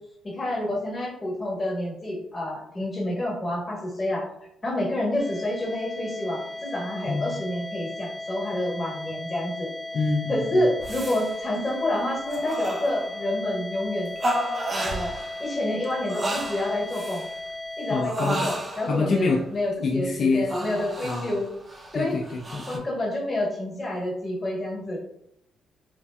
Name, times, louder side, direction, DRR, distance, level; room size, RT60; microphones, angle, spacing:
voice 1, 0.2-4.2 4.6-9.7 10.3-14.1 14.8-15.1 15.4-17.2 17.8-21.5 21.9-22.2 22.7-25.0, left 1 dB, 25° left, -4 dB, 1.4 m, -28 dB
sound 1, 5.2-18.0, left 2 dB, 10° right, 1.3 m, -36 dB
voice 2, 7.1-7.4 9.9-10.7 17.9-18.4 18.9-19.4 19.8-20.5 21.0-21.3 21.9-22.9, left 4 dB, 55° left, 0 dB, 0.3 m, -26 dB
sound 2, 10.8-11.3 11.6-12.0 12.3-13.3 14.2-15.5 15.8-17.3 18.0-19.1 20.5-22.8, right 1 dB, 30° right, 0.5 m, -32 dB
3.2 x 2.6 x 2.2 m, 0.77 s
cardioid pair, 90°, 0 cm